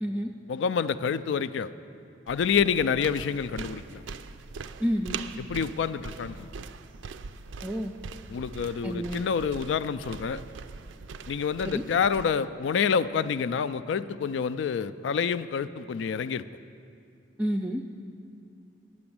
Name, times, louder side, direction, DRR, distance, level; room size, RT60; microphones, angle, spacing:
voice 1, 0.5-1.7 2.3-4.0 5.4-6.5 8.3-10.4 11.3-16.4, left 6 dB, 70° left, 15 dB, 0.3 m, -28 dB
sound 1, 2.3-12.3, right 5 dB, 85° right, 0.4 m, -42 dB
voice 2, 4.8-5.2 7.6-7.9 8.8-9.3 11.7-11.8 17.4-17.8, equal, 10° right, 1 dB, 0.3 m, -29 dB
9.6 x 6.9 x 8.6 m, 2.5 s
head